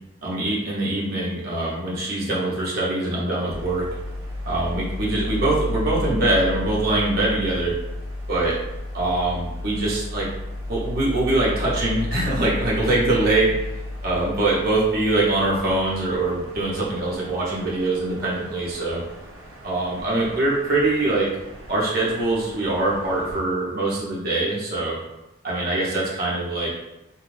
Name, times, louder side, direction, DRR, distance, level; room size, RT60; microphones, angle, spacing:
voice 1, 0.2-3.9 4.5-7.7 8.3-8.5 8.9-10.3 10.7-13.7 14.0-19.0 19.6-21.3 21.7-25.0 25.4-26.7, right 2 dB, 45° right, -7 dB, 0.9 m, -23 dB
sound 1, 3.5-23.4, left 1 dB, 85° right, 0.6 m, -33 dB
2.6 x 2.3 x 3.2 m, 0.95 s
head